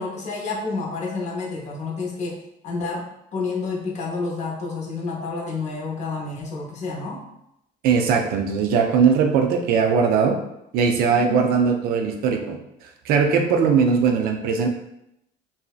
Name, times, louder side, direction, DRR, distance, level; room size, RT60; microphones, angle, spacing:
voice 1, 0.0-7.2 11.1-11.4, left 3 dB, 45° left, -1 dB, 0.6 m, -29 dB
voice 2, 7.8-10.4 10.7-12.6 13.0-14.7, right 6 dB, 60° right, 4 dB, 0.4 m, -19 dB
2.6 x 2.0 x 2.3 m, 0.81 s
cardioid pair, 125°, 17 cm